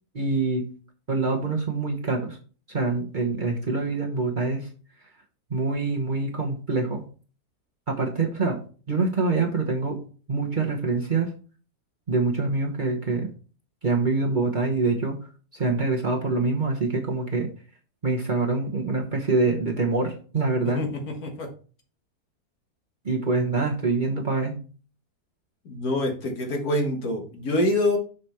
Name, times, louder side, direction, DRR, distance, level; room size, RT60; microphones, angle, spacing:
voice 1, 0.1-0.7 1.1-2.4 2.7-4.7 5.5-7.0 7.9-8.6 8.9-10.0 10.3-11.3 12.1-13.3 13.8-15.2 15.5-17.5 18.0-20.8 23.0-24.5, right 3 dB, 35° right, 0 dB, 1.1 m, -25 dB
voice 2, 20.6-21.5 25.7-28.0, left 1 dB, 65° left, 2 dB, 2.0 m, -26 dB
6.7 x 5.0 x 4.4 m, 0.39 s
omnidirectional pair, 1.7 m